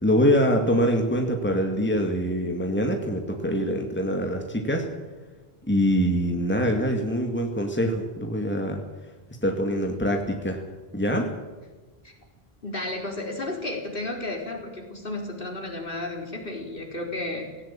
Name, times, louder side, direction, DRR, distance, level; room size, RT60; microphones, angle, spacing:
voice 1, 0.0-4.9 5.7-8.8 9.4-10.6 10.9-11.3, equal, 10° left, 3 dB, 2.2 m, -24 dB
voice 2, 12.6-17.5, left 2 dB, 60° left, 1 dB, 4.2 m, -33 dB
17.5 x 17.5 x 9.0 m, 1.3 s
omnidirectional pair, 1.0 m